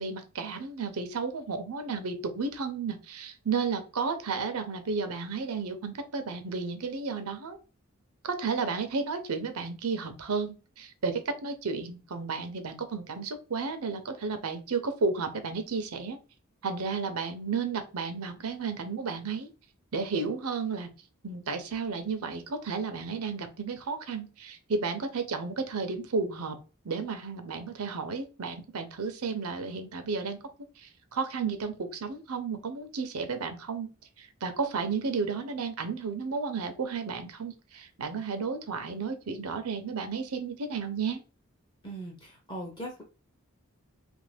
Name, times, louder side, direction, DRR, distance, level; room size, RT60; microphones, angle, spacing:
voice 1, 0.0-7.6 8.2-16.2 16.6-19.5 19.9-20.9 21.2-26.6 26.8-30.4 30.8-33.9 34.2-41.2, right 4 dB, 85° right, 8 dB, 0.6 m, -33 dB
voice 2, 41.8-43.0, right 1 dB, 20° left, 1 dB, 0.7 m, -39 dB
2.9 x 2.5 x 3.3 m, 0.33 s
head